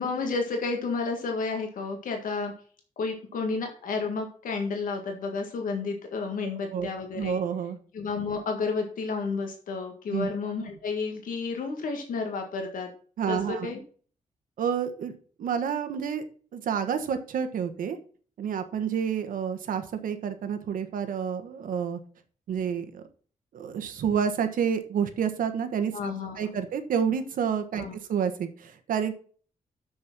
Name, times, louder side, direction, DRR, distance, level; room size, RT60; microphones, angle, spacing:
voice 1, 0.0-2.5 3.0-7.4 7.9-12.9 13.3-13.8 25.9-26.5 27.8-27.9, left 4 dB, 80° left, 3 dB, 1.7 m, -31 dB
voice 2, 6.4-6.9 7.1-7.8 10.1-10.3 13.2-13.7 14.6-16.2 16.5-18.0 18.4-22.0 22.5-23.0 23.5-29.1, right 7 dB, 85° right, 8 dB, 1.3 m, -29 dB
7.0 x 6.3 x 5.9 m, 0.43 s
wide cardioid pair, 170°, 14 cm